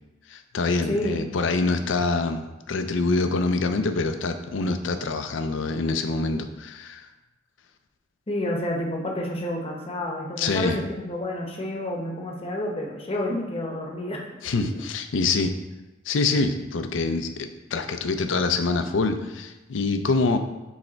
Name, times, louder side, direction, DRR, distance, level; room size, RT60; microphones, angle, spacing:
voice 1, 0.3-7.1 10.4-10.8 14.4-15.5 16.1-20.4, left 3 dB, 70° left, 7 dB, 0.5 m, -25 dB
voice 2, 0.9-1.2 8.3-14.2 14.5-14.8, left 1 dB, 30° left, 0 dB, 0.9 m, -29 dB
6.4 x 3.4 x 4.4 m, 1.0 s
head